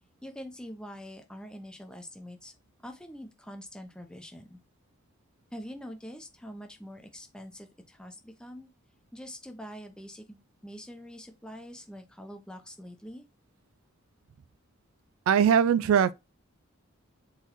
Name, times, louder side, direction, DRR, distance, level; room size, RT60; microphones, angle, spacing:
voice 1, 0.2-2.5 2.8-4.6 5.5-8.7 9.1-13.2, equal, 5° left, 0.6 m, -44 dB
voice 2, 15.3-16.1, right 8 dB, 75° right, 0.3 m, -21 dB
4.1 x 3.9 x 3.0 m
head